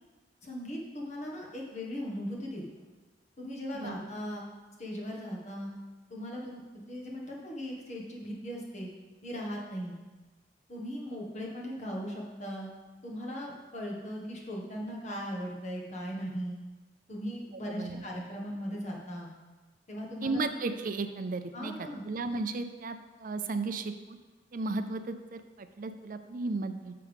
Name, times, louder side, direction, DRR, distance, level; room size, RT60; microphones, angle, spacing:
voice 1, 0.4-2.6 3.4-4.4 4.8-5.7 6.1-6.6 6.9-8.9 9.2-9.9 10.7-12.7 13.0-16.6 17.1-19.3 19.9-20.4 21.5-22.0, equal, 40° left, -2 dB, 1.6 m, -38 dB
voice 2, 17.7-18.0 20.2-24.2 24.5-26.9, right 3 dB, 50° right, 9 dB, 0.5 m, -35 dB
9.5 x 6.8 x 3.5 m, 1.2 s
head